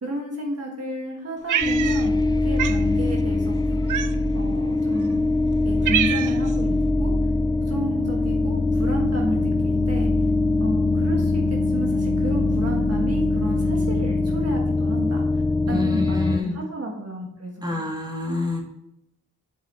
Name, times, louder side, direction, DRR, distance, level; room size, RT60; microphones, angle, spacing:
voice 1, 0.0-3.8 4.3-5.2 5.6-7.1 7.6-10.3 10.6-15.4 15.7-17.9, right 1 dB, 45° right, -1 dB, 1.6 m, -32 dB
Cat, 1.5-2.3 2.6-2.8 3.9-4.4 5.1-5.2 5.5-6.5, right 9 dB, 65° right, 0.5 m, -26 dB
sound 1, 1.6-16.4, left 2 dB, 15° left, 0.3 m, -22 dB
voice 2, 15.7-16.5 17.6-18.6, left 2 dB, 10° right, -1 dB, 2.2 m, -27 dB
7.6 x 5.4 x 4.3 m, 0.81 s
wide cardioid pair, 110°, 33 cm